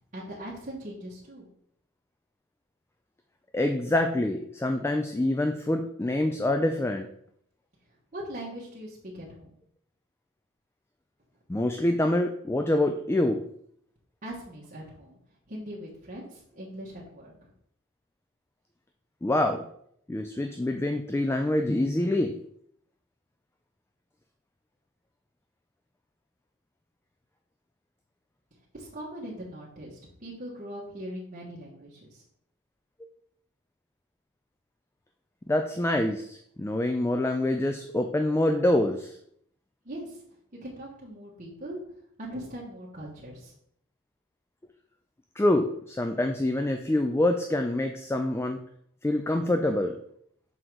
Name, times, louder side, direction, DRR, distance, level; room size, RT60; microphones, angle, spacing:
voice 1, 0.1-1.5 8.1-9.5 14.2-15.2 15.5-17.5 28.7-32.2 39.8-40.2 40.6-41.8 42.2-43.5, right 1 dB, 35° right, -5 dB, 1.4 m, -40 dB
voice 2, 3.5-7.1 11.5-13.4 19.2-19.6 20.1-22.3 35.5-39.2 45.4-48.6 49.0-50.0, left 1 dB, 10° left, 5 dB, 0.3 m, -26 dB
6.0 x 3.8 x 4.6 m, 0.68 s
head